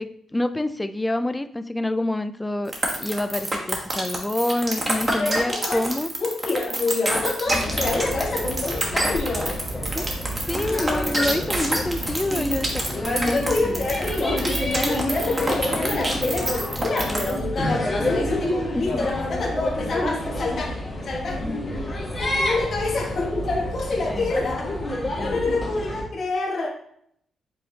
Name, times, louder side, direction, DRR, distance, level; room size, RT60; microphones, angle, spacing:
voice 1, 0.0-6.1 9.9-10.2 10.5-13.9 18.8-19.1 21.4-21.7 24.1-24.3 25.2-25.4, left 1 dB, 10° left, 11 dB, 0.3 m, -27 dB
sound 1, 2.7-17.4, right 1 dB, 25° right, 1.1 m, -27 dB
voice 2, 5.2-5.9 6.2-9.6 10.7-10.8 13.3-14.4 14.8-20.8 21.0-21.4 22.2-24.7 25.2-26.7, left 3 dB, 55° left, -2 dB, 1.3 m, -27 dB
sound 2, 7.5-26.0, left 1 dB, 30° left, 1.7 m, -28 dB
5.3 x 3.4 x 2.7 m, 0.67 s
cardioid pair, 85°, 0 cm